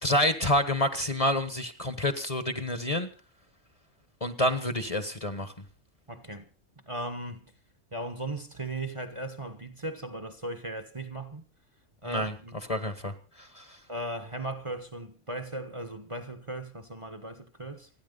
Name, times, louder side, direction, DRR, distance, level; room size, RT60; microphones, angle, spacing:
voice 1, 0.0-3.1 4.2-5.5 12.0-12.3 12.7-13.1 13.6-13.7, left 1 dB, 30° left, 1.5 m, -28 dB
voice 2, 6.1-6.4 6.9-7.5 7.9-11.4 12.0-12.6 13.9-17.9, right 1 dB, 25° right, 1.3 m, -37 dB
29.5 x 10.0 x 4.0 m
omnidirectional pair, 1.3 m